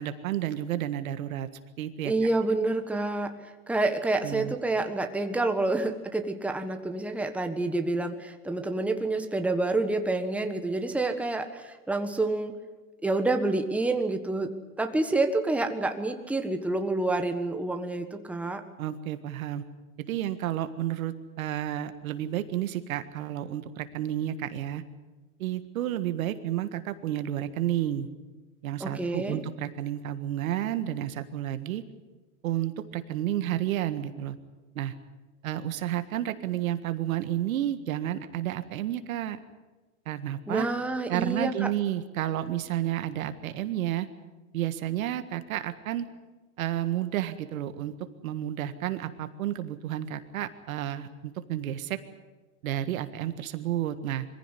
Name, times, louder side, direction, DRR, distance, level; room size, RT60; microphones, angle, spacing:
voice 1, 0.0-1.5 1.8-2.1 4.2-4.5 18.8-19.6 20.0-24.8 25.4-28.1 28.6-31.8 32.4-34.4 34.8-34.9 35.4-39.4 40.1-40.7 41.1-44.1 44.5-46.1 46.6-47.9 48.2-52.0 52.6-54.3, right 12 dB, 75° right, 11 dB, 1.7 m, -31 dB
voice 2, 2.0-12.6 13.0-14.5 14.8-18.6 28.8-29.4 40.5-41.7, right 2 dB, 5° right, 6 dB, 1.4 m, -28 dB
22.5 x 15.5 x 9.9 m, 1.2 s
hypercardioid pair, 125°, 42 cm